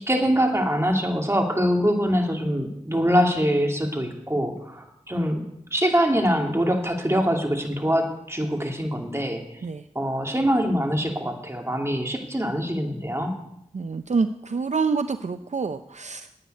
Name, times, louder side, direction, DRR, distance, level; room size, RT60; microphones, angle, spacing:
voice 1, 0.0-5.4 5.7-9.4 9.9-13.3, equal, 20° right, 2 dB, 2.5 m, -24 dB
voice 2, 13.7-16.3, right 4 dB, 60° right, 9 dB, 0.5 m, -27 dB
10.5 x 9.2 x 9.4 m, 0.81 s
wide cardioid pair, 55°, 14 cm